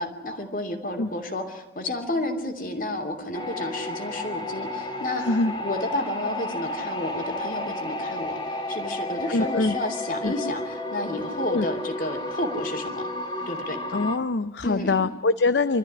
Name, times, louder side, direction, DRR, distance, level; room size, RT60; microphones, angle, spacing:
voice 1, 0.0-5.2 5.6-13.1 13.5-13.8 14.6-15.1, left 1 dB, 50° left, 5 dB, 2.9 m, -31 dB
sound 1, 3.3-14.2, left 2 dB, 30° left, 2.3 m, -32 dB
voice 2, 5.2-5.5 9.3-9.8 10.2-10.3 11.5-11.7 13.9-15.8, left 3 dB, 85° left, 13 dB, 0.6 m, -24 dB
25.0 x 14.0 x 9.8 m, 1.1 s
head